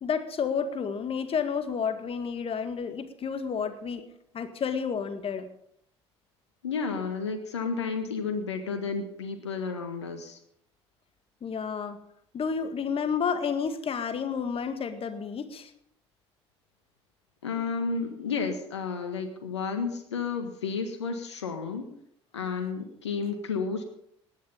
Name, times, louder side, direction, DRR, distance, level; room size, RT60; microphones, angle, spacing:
voice 1, 0.0-4.0 4.3-5.5 11.4-12.0 12.3-15.7, left 6 dB, 40° left, 9 dB, 1.9 m, -30 dB
voice 2, 6.6-10.4 17.4-21.9 22.3-23.8, left 5 dB, 85° left, 6 dB, 1.6 m, -32 dB
17.5 x 11.5 x 5.5 m, 0.69 s
figure-of-eight pair, 55°, 14 cm